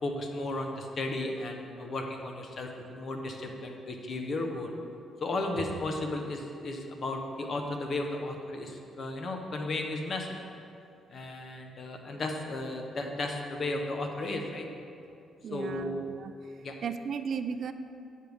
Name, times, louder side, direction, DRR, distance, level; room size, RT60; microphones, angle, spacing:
voice 1, 0.0-4.7 5.2-10.4 11.1-14.7 15.5-16.1 16.6-16.8, left 2 dB, 50° left, 3 dB, 1.0 m, -34 dB
voice 2, 15.4-16.3 16.8-17.7, right 6 dB, 60° right, 10 dB, 0.4 m, -35 dB
9.3 x 6.6 x 3.5 m, 2.5 s
cardioid pair, 90°, 0 cm